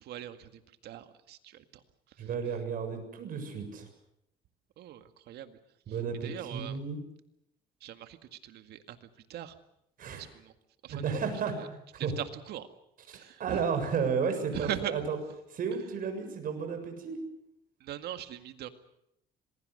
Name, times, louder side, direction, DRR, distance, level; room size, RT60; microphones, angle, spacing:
voice 1, 0.0-1.8 2.2-2.3 4.8-5.6 6.2-6.8 7.8-9.6 10.1-10.5 10.8-11.1 11.5-11.7 12.0-12.7 13.1-13.6 14.5-14.9 17.8-18.7, right 11 dB, 75° right, 9 dB, 2.0 m, -40 dB
voice 2, 2.2-3.9 5.9-7.0 10.0-10.3 10.9-12.1 13.1-15.2 15.5-17.2, right 6 dB, 55° right, 6 dB, 6.9 m, -33 dB
26.5 x 21.5 x 6.6 m, 0.78 s
cardioid pair, 110°, 17 cm